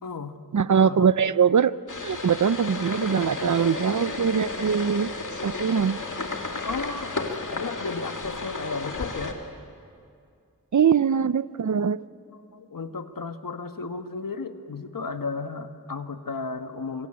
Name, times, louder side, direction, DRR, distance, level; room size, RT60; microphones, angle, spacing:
voice 1, 0.0-0.4 0.8-1.1 6.6-9.4 12.5-17.1, left 4 dB, 85° left, 8 dB, 1.4 m, -34 dB
voice 2, 0.5-1.8 2.0-5.1 5.4-6.0 10.7-12.0, right 7 dB, 65° right, 17 dB, 0.6 m, -22 dB
sound 1, 1.9-9.3, left 3 dB, 65° left, 2.3 m, -33 dB
25.5 x 24.0 x 8.7 m, 2.4 s
wide cardioid pair, 75°, 32 cm